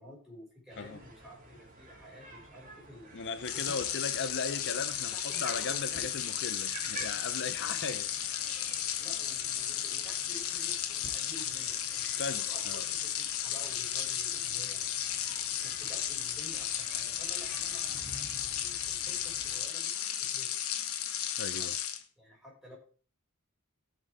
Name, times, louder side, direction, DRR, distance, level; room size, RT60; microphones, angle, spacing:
voice 1, 0.0-3.2 3.5-3.8 4.7-6.1 7.4-7.8 9.0-14.9 15.6-20.5 21.4-21.7 22.2-22.8, equal, ahead, 5.9 m, -52 dB
sound 1, 0.7-19.6, right 2 dB, 40° right, 3.2 m, -51 dB
voice 2, 3.1-8.6 12.2-12.8 21.4-21.8, left 5 dB, 55° left, 0.6 m, -37 dB
sound 2, 3.4-22.0, left 10 dB, 80° left, 1.2 m, -34 dB
17.5 x 6.6 x 3.6 m
head